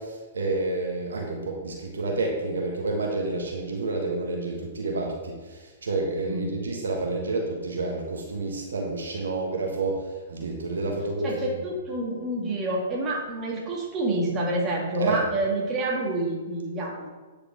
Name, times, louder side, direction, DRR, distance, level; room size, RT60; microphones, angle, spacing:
voice 1, 0.0-11.3 15.0-15.2, right 2 dB, 80° right, 0 dB, 1.3 m, -29 dB
voice 2, 11.2-17.1, right 2 dB, 25° right, -2 dB, 1.9 m, -28 dB
8.9 x 4.9 x 3.7 m, 1.3 s
hypercardioid pair, 120°, 0 cm